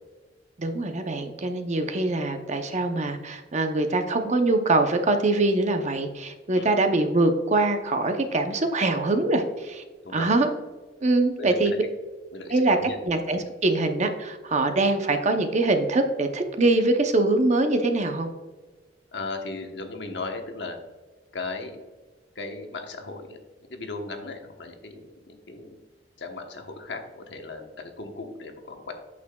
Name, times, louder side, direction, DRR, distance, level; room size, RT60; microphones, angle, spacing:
voice 1, 0.6-9.8 10.1-10.5 11.0-11.8 12.5-12.8 13.0-18.3, right 2 dB, 40° right, 6 dB, 0.7 m, -23 dB
voice 2, 11.4-11.8 12.3-13.0 19.1-20.8 21.3-21.8 22.3-23.4 23.7-25.8 26.2-28.9, left 3 dB, 70° left, 4 dB, 1.1 m, -36 dB
8.4 x 6.6 x 2.3 m, 1.3 s
head